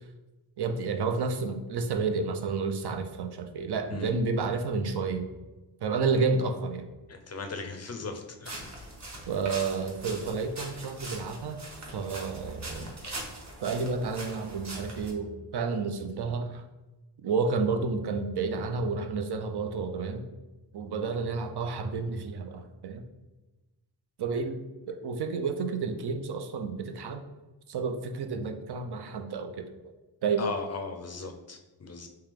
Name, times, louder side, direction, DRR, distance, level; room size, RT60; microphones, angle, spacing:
voice 1, 0.6-5.3 5.8-6.8 9.3-11.6 11.9-12.9 13.6-16.6 17.2-20.3 20.7-23.0 24.2-24.6 24.9-27.2 27.7-29.7 30.2-30.5, right 4 dB, 65° right, 6 dB, 0.5 m, -30 dB
voice 2, 7.1-8.5 12.8-12.9 20.9-21.1 30.4-32.1, left 4 dB, 35° left, 5 dB, 0.4 m, -37 dB
sound 1, 8.4-15.1, right 2 dB, 40° right, 0.8 m, -42 dB
3.4 x 2.8 x 3.4 m, 1.1 s
wide cardioid pair, 105°, 43 cm